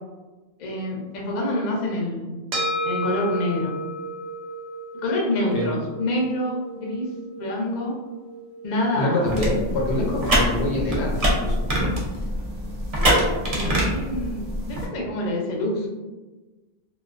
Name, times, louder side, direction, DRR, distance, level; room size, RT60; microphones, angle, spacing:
voice 1, 0.6-2.4 2.8-3.8 5.0-7.1 7.4-7.9 8.6-9.3 13.0-15.9, left 1 dB, 50° left, -2 dB, 0.6 m, -27 dB
sound 1, 2.5-11.1, equal, 80° right, 0.9 m, -34 dB
voice 2, 8.9-11.7, left 1 dB, 85° left, -2 dB, 0.9 m, -25 dB
sound 2, 9.3-14.9, equal, 45° right, 0.5 m, -24 dB
2.3 x 2.3 x 2.4 m, 1.2 s
omnidirectional pair, 1.1 m